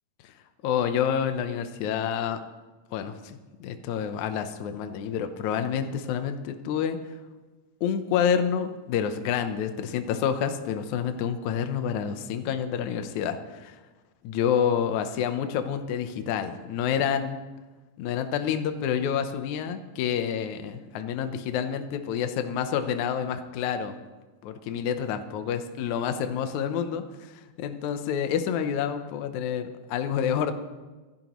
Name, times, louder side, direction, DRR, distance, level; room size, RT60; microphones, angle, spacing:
voice 1, 0.6-2.4 2.9-7.0 7.8-13.8 14.2-17.4 18.0-23.9 24.4-30.5, left 8 dB, 70° left, 8 dB, 2.1 m, -28 dB
25.5 x 12.0 x 3.1 m, 1.2 s
omnidirectional pair, 3.7 m